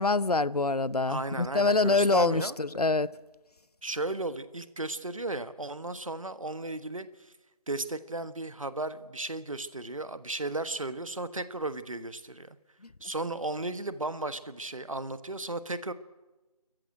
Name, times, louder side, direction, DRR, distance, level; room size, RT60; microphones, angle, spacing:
voice 1, 0.0-3.1, left 3 dB, 75° left, 0.8 m, -25 dB
voice 2, 1.1-2.5 3.8-7.3 7.7-12.6 13.0-15.9, right 2 dB, 55° right, 1.3 m, -35 dB
26.0 x 14.5 x 9.0 m
figure-of-eight pair, 170°, 20 cm